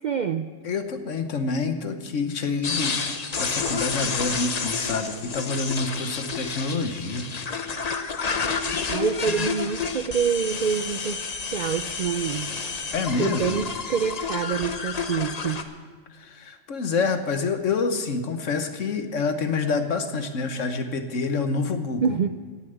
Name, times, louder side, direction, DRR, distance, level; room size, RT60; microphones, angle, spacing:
voice 1, 0.0-0.5 8.9-12.7 13.2-15.6 22.0-22.3, right 7 dB, 60° right, 9 dB, 0.4 m, -26 dB
voice 2, 0.6-3.0 3.4-7.3 12.9-13.6 16.1-22.2, left 4 dB, 75° left, 8 dB, 1.4 m, -27 dB
sound 1, 2.6-15.6, left 5 dB, 35° left, 0.8 m, -30 dB
18.0 x 7.2 x 8.0 m, 1.5 s
omnidirectional pair, 1.3 m